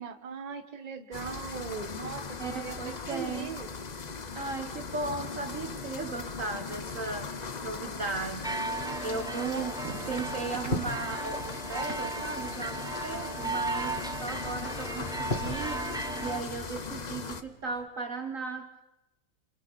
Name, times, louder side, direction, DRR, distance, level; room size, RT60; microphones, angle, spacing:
voice 1, 0.0-3.7 9.1-10.0, right 6 dB, 25° right, 7 dB, 1.2 m, -40 dB
sound 1, 1.1-17.4, left 5 dB, 55° left, 0.4 m, -39 dB
voice 2, 2.4-3.6 4.3-18.7, right 3 dB, 45° right, 7 dB, 1.3 m, -36 dB
sound 2, 7.0-17.9, left 2 dB, 25° left, 2.7 m, -43 dB
sound 3, 8.4-16.4, right 2 dB, 5° right, 0.6 m, -36 dB
28.0 x 27.5 x 4.1 m, 0.96 s
omnidirectional pair, 2.2 m